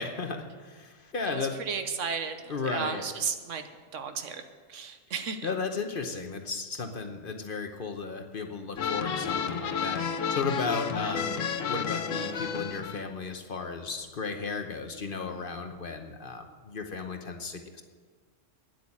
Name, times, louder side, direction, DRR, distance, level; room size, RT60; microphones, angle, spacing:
voice 1, 0.0-1.6 2.5-3.0 5.4-17.8, left 4 dB, 45° left, 6 dB, 1.0 m, -35 dB
voice 2, 1.2-3.6 3.9-4.4 4.7-5.5, right 6 dB, 70° right, 8 dB, 1.2 m, -34 dB
sound 1, 8.8-13.0, left 6 dB, 85° left, 1.2 m, -31 dB
9.5 x 8.3 x 8.5 m, 1.5 s
omnidirectional pair, 1.3 m